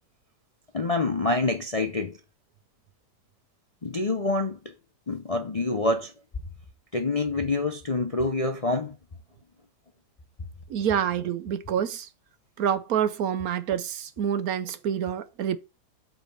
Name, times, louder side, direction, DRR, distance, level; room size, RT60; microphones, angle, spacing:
voice 1, 0.7-2.2 3.8-4.6 5.1-6.1 6.9-9.0, left 2 dB, 35° left, 0.6 m, -26 dB
voice 2, 10.7-12.1 12.6-15.6, right 9 dB, 65° right, 1.1 m, -27 dB
8.3 x 5.0 x 5.4 m
omnidirectional pair, 1.7 m